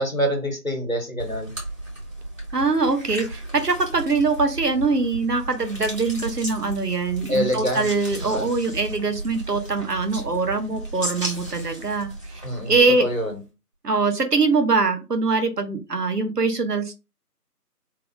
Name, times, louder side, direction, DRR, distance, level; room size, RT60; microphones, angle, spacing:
voice 1, 0.0-1.5 7.3-7.9 8.2-8.5 12.4-13.4, equal, 55° left, 3 dB, 1.4 m, -25 dB
sound 1, 1.2-13.4, right 1 dB, 50° right, 2.0 m, -35 dB
voice 2, 2.5-13.1 13.8-17.0, right 3 dB, 70° right, 7 dB, 0.9 m, -23 dB
3.4 x 2.4 x 3.4 m, 0.28 s
figure-of-eight pair, 175°, 48 cm